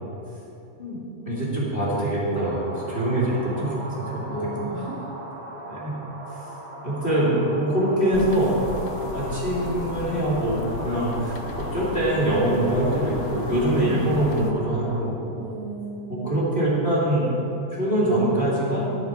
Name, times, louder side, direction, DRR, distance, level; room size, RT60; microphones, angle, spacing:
voice 1, 1.2-4.2 5.7-5.9 6.8-8.5 9.1-10.6 10.8-15.2 16.1-17.3 17.7-18.8, right 1 dB, 20° left, -8 dB, 2.2 m, -23 dB
sound 1, 2.3-15.0, right 1 dB, 45° right, 2.8 m, -38 dB
voice 2, 4.3-5.1 13.7-14.2 15.4-16.4, right 2 dB, 70° right, -7 dB, 0.8 m, -33 dB
sound 2, 8.1-14.5, left 5 dB, 85° left, 1.4 m, -35 dB
10.5 x 9.6 x 4.5 m, 2.9 s
omnidirectional pair, 3.5 m